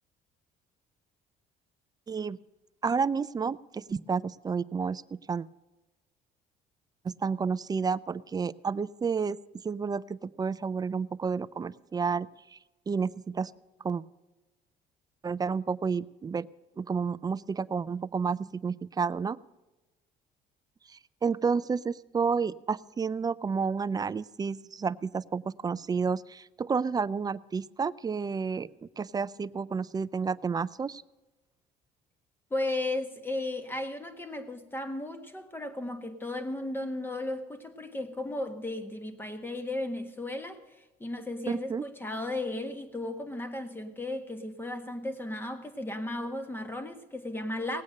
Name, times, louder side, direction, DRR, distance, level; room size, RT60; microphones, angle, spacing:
voice 1, 2.1-2.4 2.8-5.4 7.0-9.4 9.6-12.6 12.9-13.5 13.8-14.0 15.2-16.5 16.8-19.4 21.2-28.7 29.0-31.0 41.5-41.8, right 5 dB, 25° right, 0.4 m, -30 dB
voice 2, 32.5-47.8, left 2 dB, 10° left, 1.5 m, -35 dB
18.5 x 8.6 x 6.5 m
cardioid pair, 110°, 17 cm